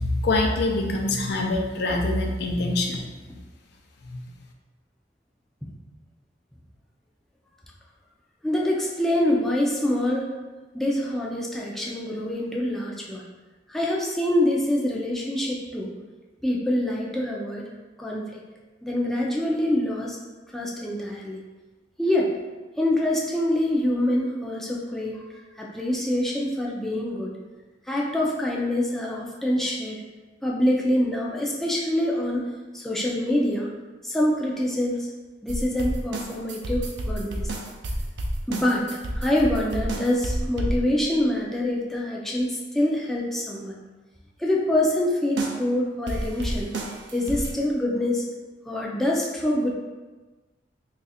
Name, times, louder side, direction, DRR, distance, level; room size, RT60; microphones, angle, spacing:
voice 1, 0.0-3.0 4.0-4.2, left 2 dB, 65° left, 2 dB, 0.5 m, -24 dB
voice 2, 8.4-10.3 10.7-13.2 13.7-15.9 16.4-17.7 18.0-18.4 18.8-20.2 20.5-21.4 22.0-22.3 22.8-25.2 25.6-27.3 27.9-30.0 30.4-32.4 32.7-33.7 34.0-35.1 35.4-37.4 38.5-43.7 44.4-46.7 47.1-48.2 48.7-49.7, left 1 dB, ahead, -4 dB, 0.4 m, -25 dB
sound 1, 35.5-41.1 45.4-45.7 46.1-47.5, right 1 dB, 70° right, 0.5 m, -30 dB
3.1 x 2.4 x 4.1 m, 1.2 s
head